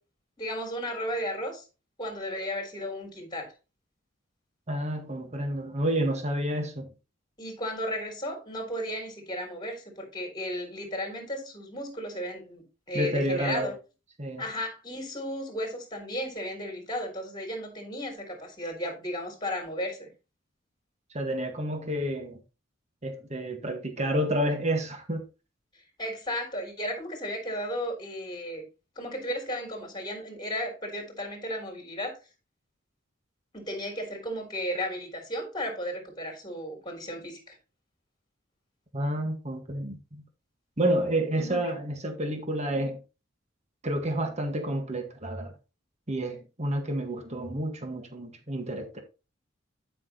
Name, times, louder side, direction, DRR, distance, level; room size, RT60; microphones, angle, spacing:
voice 1, 0.4-1.6 2.0-3.5 7.4-13.7 14.4-20.1 26.0-28.6 29.0-32.2 33.5-37.6 41.4-41.7, equal, 25° left, 3.7 m, -34 dB
voice 2, 4.7-6.9 12.9-13.7 14.2-14.4 21.1-22.4 23.0-25.2 38.9-40.2 40.8-43.0 43.8-45.5 46.1-49.0, right 1 dB, 35° right, 1.7 m, -29 dB
12.0 x 6.0 x 3.0 m
head